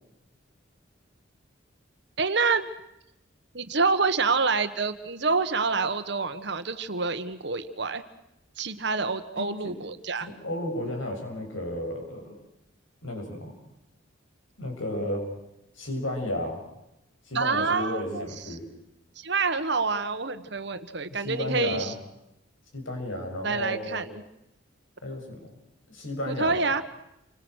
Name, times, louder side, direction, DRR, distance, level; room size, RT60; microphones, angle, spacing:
voice 1, 2.2-2.7 3.5-8.0 8.6-10.3 17.3-18.6 19.2-21.9 23.4-24.1 26.3-26.8, right 4 dB, 60° right, 10 dB, 1.5 m, -27 dB
voice 2, 9.3-9.8 10.2-12.3 13.0-13.5 14.6-15.2 15.8-16.6 17.3-18.6 21.1-21.9 22.7-24.0 25.0-25.5 25.9-26.6, left 1 dB, 85° left, 3 dB, 7.6 m, -33 dB
29.0 x 25.5 x 6.4 m, 0.86 s
head